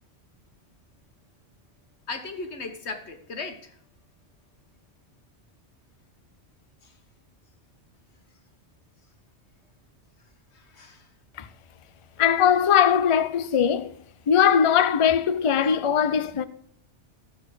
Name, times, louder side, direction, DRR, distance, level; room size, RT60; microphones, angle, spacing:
voice 1, 2.1-3.7 10.5-11.0, left 3 dB, 75° left, 1.6 m, -36 dB
voice 2, 12.2-14.0 14.3-16.5, left 8 dB, 40° left, 0.5 m, -20 dB
14.0 x 7.3 x 4.8 m
omnidirectional pair, 1.1 m